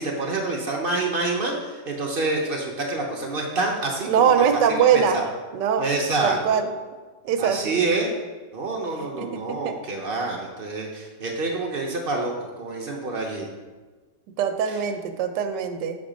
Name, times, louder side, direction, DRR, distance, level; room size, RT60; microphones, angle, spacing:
voice 1, 0.0-4.3 4.7-5.3 5.8-6.6 7.4-8.2 8.5-13.5 14.7-14.8, right 2 dB, 45° right, 0 dB, 0.7 m, -27 dB
voice 2, 4.1-5.2 5.5-5.8 6.2-6.7 7.2-7.8 9.0-9.7 14.4-16.0, right 7 dB, 75° right, 7 dB, 1.2 m, -22 dB
6.3 x 4.4 x 5.0 m, 1.3 s
omnidirectional pair, 1.9 m